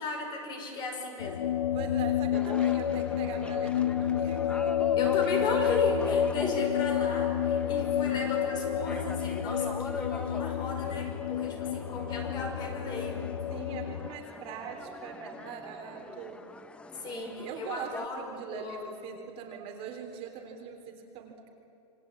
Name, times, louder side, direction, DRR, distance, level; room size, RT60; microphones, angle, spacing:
voice 1, 0.0-1.5 5.0-13.3 16.9-19.0, left 2 dB, 25° left, 2 dB, 5.3 m, -35 dB
sound 1, 1.2-14.1, left 9 dB, 90° left, 1.2 m, -29 dB
voice 2, 1.7-4.8 13.5-16.5 17.0-21.5, right 7 dB, 30° right, 3 dB, 3.4 m, -42 dB
sound 2, 2.3-18.1, left 3 dB, 5° left, 0.7 m, -44 dB
28.0 x 23.5 x 8.7 m, 3.0 s
supercardioid pair, 155°, 18 cm